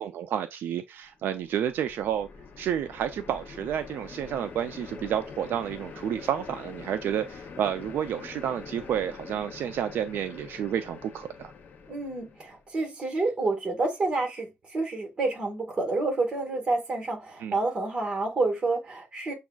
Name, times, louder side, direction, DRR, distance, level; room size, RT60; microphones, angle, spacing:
voice 1, 0.0-2.3 2.6-11.5 17.4-17.6, right 9 dB, 70° right, 0.3 m, -30 dB
sound 1, 1.2-12.6, left 5 dB, 50° left, 0.6 m, -45 dB
sound 2, 3.5-9.0, equal, ahead, 1.3 m, -52 dB
voice 2, 11.9-19.3, right 3 dB, 25° right, 1.5 m, -29 dB
7.0 x 2.3 x 2.3 m
cardioid pair, 150°, 4 cm